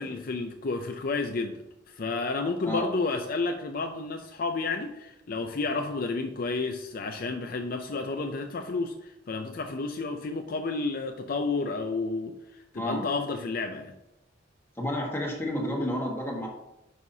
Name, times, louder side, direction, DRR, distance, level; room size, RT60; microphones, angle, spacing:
voice 1, 0.0-13.9, left 3 dB, 50° left, 5 dB, 0.5 m, -31 dB
voice 2, 12.7-13.1 14.8-16.5, left 1 dB, 15° left, -1 dB, 1.5 m, -31 dB
9.3 x 5.7 x 2.8 m, 0.91 s
head